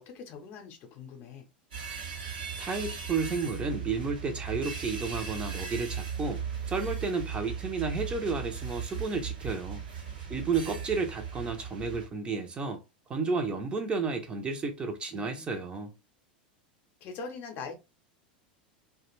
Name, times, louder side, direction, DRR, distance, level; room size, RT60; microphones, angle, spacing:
voice 1, 0.0-1.5 9.7-9.8 10.2-10.5 15.1-15.6 17.0-17.7, left 5 dB, 40° left, 0.7 m, -43 dB
sound 1, 1.7-12.1, right 7 dB, 65° right, 0.9 m, -37 dB
voice 2, 2.6-6.4 6.7-9.8 10.3-12.8 13.1-15.9, right 4 dB, 20° right, 0.6 m, -32 dB
2.4 x 2.2 x 3.0 m
figure-of-eight pair, 85°, 5 cm